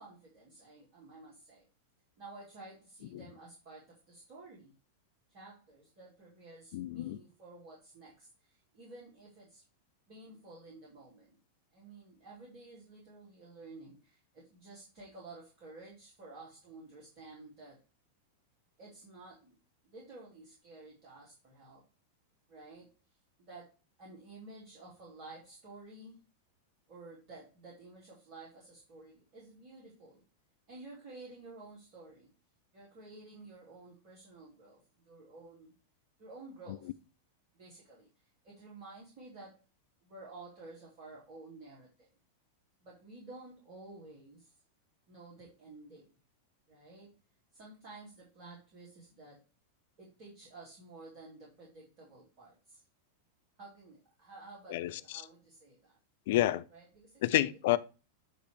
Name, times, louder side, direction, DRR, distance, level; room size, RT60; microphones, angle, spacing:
voice 1, 0.0-1.7 2.2-4.8 5.3-9.6 10.1-11.4 11.7-17.8 18.8-19.6 19.8-21.8 22.5-22.9 23.4-26.2 26.9-30.2 30.7-32.3 32.7-35.7 36.2-36.9 37.5-38.1 38.4-39.6 40.0-42.1 42.8-44.5 45.1-46.1 46.7-47.1 47.5-49.4 50.0-52.8 53.6-56.0 56.7-57.5, right 2 dB, 40° right, 2.7 m, -52 dB
voice 2, 6.7-7.2 54.7-55.2 56.3-56.6 57.2-57.8, left 15 dB, 50° left, 0.4 m, -29 dB
8.9 x 3.3 x 4.6 m
figure-of-eight pair, 90°, 0 cm